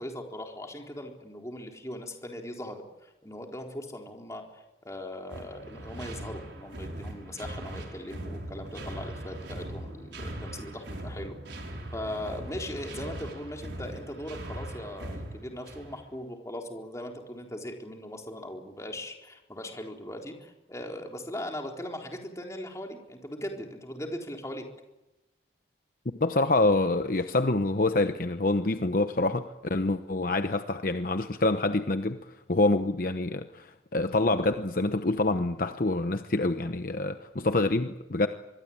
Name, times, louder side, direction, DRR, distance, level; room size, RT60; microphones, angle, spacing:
voice 1, 0.0-11.3 11.9-24.6, left 1 dB, 15° left, 2 dB, 4.0 m, -39 dB
sound 1, 5.3-16.1, right 1 dB, 85° right, 5.4 m, -40 dB
voice 2, 26.2-38.3, left 2 dB, 50° left, 8 dB, 0.9 m, -26 dB
25.0 x 22.5 x 8.8 m, 0.99 s
head